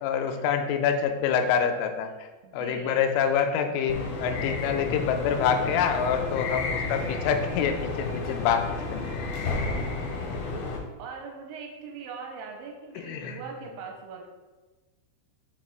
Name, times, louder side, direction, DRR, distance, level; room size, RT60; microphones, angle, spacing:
voice 1, 0.0-9.1 13.0-13.4, left 7 dB, 85° left, 6 dB, 3.0 m, -26 dB
voice 2, 2.4-3.1 10.1-14.3, right 5 dB, 85° right, 1 dB, 2.9 m, -42 dB
sound 1, 3.9-10.8, left 3 dB, 70° left, 2.4 m, -31 dB
6.8 x 5.8 x 2.4 m, 1.2 s
omnidirectional pair, 5.5 m